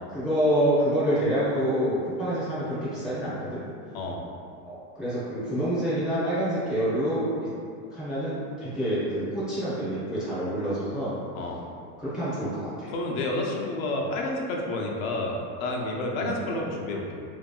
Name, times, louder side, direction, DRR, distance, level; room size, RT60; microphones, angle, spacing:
voice 1, 0.1-3.6 4.6-7.5 7.9-11.2 12.0-12.9 16.2-16.3, equal, ahead, -13 dB, 0.4 m, -27 dB
voice 2, 12.9-17.2, left 2 dB, 60° left, -1 dB, 0.6 m, -30 dB
2.8 x 2.6 x 2.3 m, 2.4 s
supercardioid pair, 135°, 47 cm